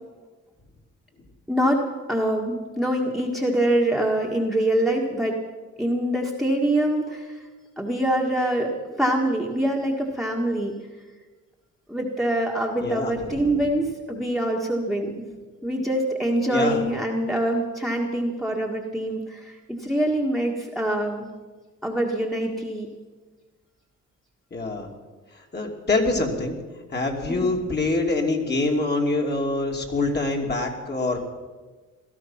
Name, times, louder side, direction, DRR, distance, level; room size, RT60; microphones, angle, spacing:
voice 1, 1.5-5.4 5.8-7.4 7.8-10.7 11.9-15.3 15.6-21.3 21.8-22.9 27.3-27.5, right 1 dB, ahead, -1 dB, 1.7 m, -24 dB
voice 2, 12.8-13.6 16.5-16.8 24.5-24.9 25.5-26.6 26.9-31.3, left 2 dB, 35° left, 1 dB, 2.8 m, -25 dB
17.0 x 13.0 x 5.8 m, 1.3 s
cardioid pair, 90°, 30 cm